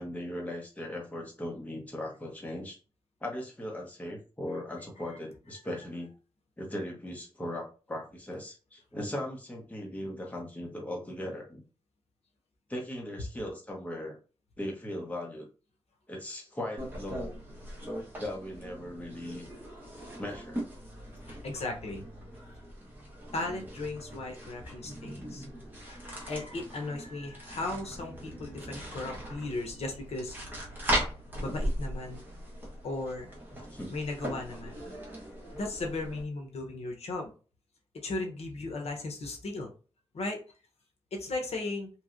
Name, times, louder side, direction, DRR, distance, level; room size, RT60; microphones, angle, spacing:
voice 1, 0.0-2.8 3.2-6.1 6.6-11.6 12.7-14.2 14.6-15.5 16.1-17.4 18.2-19.5 20.2-20.6 33.7-33.9, left 1 dB, 15° left, -1 dB, 0.8 m, -38 dB
sound 1, 16.8-36.2, equal, 20° right, 1.1 m, -39 dB
voice 2, 21.3-22.1 23.3-25.4 25.8-30.4 31.4-32.2 32.8-33.3 33.9-34.8 35.5-37.3 38.0-39.7 40.1-40.4 41.1-41.9, left 2 dB, 80° left, 2 dB, 0.8 m, -36 dB
sound 2, 27.5-33.3, right 2 dB, 45° right, 1.4 m, -52 dB
3.1 x 2.7 x 2.5 m, 0.36 s
wide cardioid pair, 160°, 11 cm